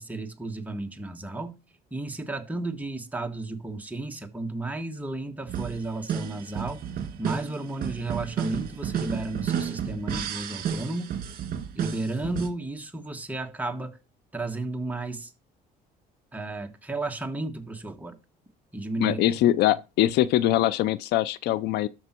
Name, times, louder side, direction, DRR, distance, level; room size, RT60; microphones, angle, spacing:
voice 1, 0.0-1.6 1.9-6.8 7.2-11.1 11.8-14.0 14.3-15.3 16.3-18.2 18.7-19.2, right 2 dB, 10° right, 1.6 m, -33 dB
sound 1, 5.5-12.5, right 8 dB, 55° right, 2.3 m, -32 dB
voice 2, 19.0-21.9, left 13 dB, 80° left, 0.6 m, -23 dB
13.0 x 5.5 x 4.5 m
cardioid pair, 110°, 17 cm